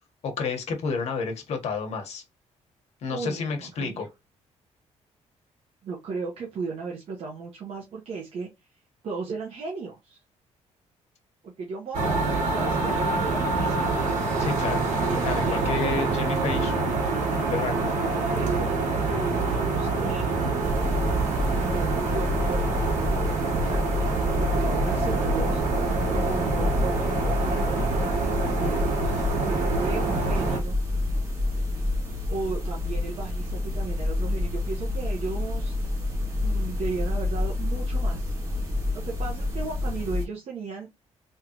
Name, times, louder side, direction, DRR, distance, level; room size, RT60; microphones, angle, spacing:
voice 1, 0.2-2.2 3.0-4.1 14.4-14.8 15.1-17.0 17.4-17.9, left 4 dB, 60° left, 1.3 m, -30 dB
voice 2, 3.1-4.1 5.8-8.5 9.0-10.2 11.4-13.9 14.9-16.1 18.3-18.7 19.1-20.3 21.5-22.7 23.1-24.1 24.4-25.6 26.2-28.9 29.4-30.8 32.3-35.7 36.4-38.3 39.0-40.9, right 4 dB, 55° right, 1.1 m, -35 dB
sound 1, 11.9-30.6, right 3 dB, 85° right, 1.4 m, -26 dB
sound 2, 20.6-40.3, left 2 dB, 25° right, 1.8 m, -28 dB
3.7 x 3.4 x 3.0 m
cardioid pair, 160°, 12 cm